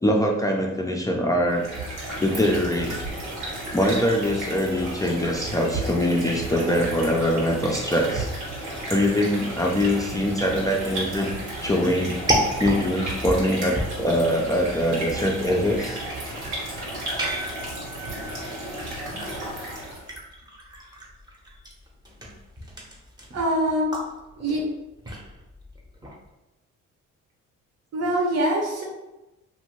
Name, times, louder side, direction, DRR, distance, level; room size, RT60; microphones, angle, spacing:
voice 1, 0.0-1.7 2.2-3.0 3.7-8.3 8.9-11.3 11.6-12.2 12.6-16.0, equal, 10° left, 0 dB, 0.3 m, -23 dB
sound 1, 1.5-20.1, right 1 dB, 85° right, 1.3 m, -33 dB
sound 2, 11.2-26.3, equal, 15° right, 0.7 m, -34 dB
voice 2, 23.3-23.9 24.4-24.6 27.9-28.8, right 1 dB, 55° right, -2 dB, 0.8 m, -24 dB
2.6 x 2.5 x 3.0 m, 0.99 s
cardioid pair, 90°, 30 cm